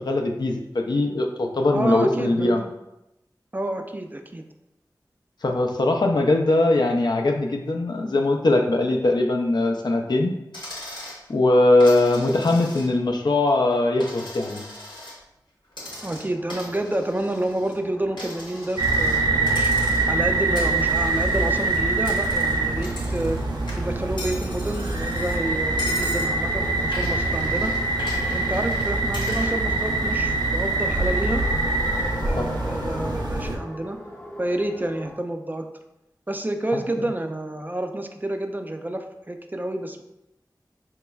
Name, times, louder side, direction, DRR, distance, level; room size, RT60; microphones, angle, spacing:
voice 1, 0.0-2.6 5.4-10.3 11.3-14.7 32.4-32.5, left 2 dB, 70° left, 3 dB, 0.4 m, -21 dB
voice 2, 1.7-2.7 3.5-4.4 16.0-19.7 20.1-23.4 23.8-27.7 28.3-31.4 32.2-34.0 34.4-35.7 36.3-40.0, right 1 dB, 25° right, 6 dB, 0.3 m, -29 dB
Coin (dropping), 10.5-11.2 11.8-13.1 13.5-15.2 15.7-17.8 18.2-19.2 19.5-20.2 20.6-23.4 23.7-25.4 25.8-26.3 26.9-29.5, left 1 dB, 90° left, 1.0 m, -39 dB
sound 1, 15.8-35.1, left 1 dB, 30° left, 0.9 m, -41 dB
sound 2, 18.8-33.6, right 3 dB, 70° right, 0.6 m, -24 dB
4.4 x 3.0 x 2.3 m, 0.89 s
wide cardioid pair, 60°, 8 cm